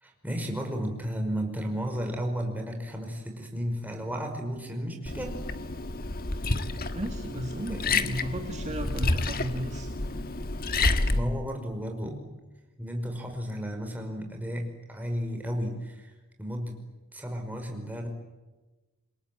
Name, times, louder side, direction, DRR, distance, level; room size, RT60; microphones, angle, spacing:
voice 1, 0.0-5.4 7.7-8.0 11.1-12.3 12.8-16.1 16.4-16.8 17.1-18.1, equal, 10° right, 3 dB, 5.4 m, -33 dB
Liquid, 5.0-11.2, left 3 dB, 45° left, 1.6 m, -29 dB
voice 2, 6.9-9.9, right 1 dB, 30° right, 3 dB, 2.0 m, -34 dB
28.0 x 22.0 x 9.2 m, 1.2 s
head